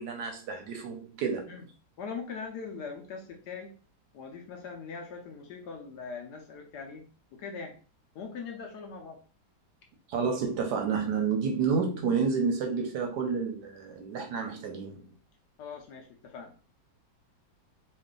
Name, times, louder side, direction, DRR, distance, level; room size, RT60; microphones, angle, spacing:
voice 1, 0.0-1.5 10.1-15.1, right 5 dB, 70° right, 3 dB, 1.0 m, -30 dB
voice 2, 2.0-3.8 4.1-7.1 7.3-7.8 8.1-9.2 15.6-16.5, left 5 dB, 70° left, 2 dB, 1.0 m, -41 dB
3.1 x 2.5 x 3.6 m, 0.38 s
omnidirectional pair, 2.1 m